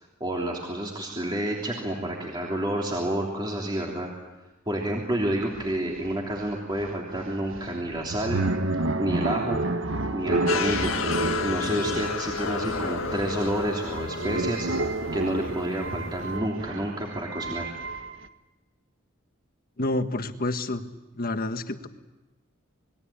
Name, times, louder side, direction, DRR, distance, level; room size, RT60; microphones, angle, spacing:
voice 1, 0.2-4.1 4.7-8.4 9.0-9.6 10.1-10.9 11.4-14.7 15.1-17.7, right 1 dB, 20° right, -2 dB, 3.2 m, -29 dB
sound 1, 5.2-5.3 5.5-18.3, right 2 dB, 70° right, 1.5 m, -30 dB
sound 2, 10.5-16.4, left 5 dB, 80° left, 1.8 m, -32 dB
voice 2, 19.8-20.8 21.2-21.9, left 2 dB, 45° left, 8 dB, 1.6 m, -28 dB
27.5 x 22.0 x 8.7 m, 1.1 s
head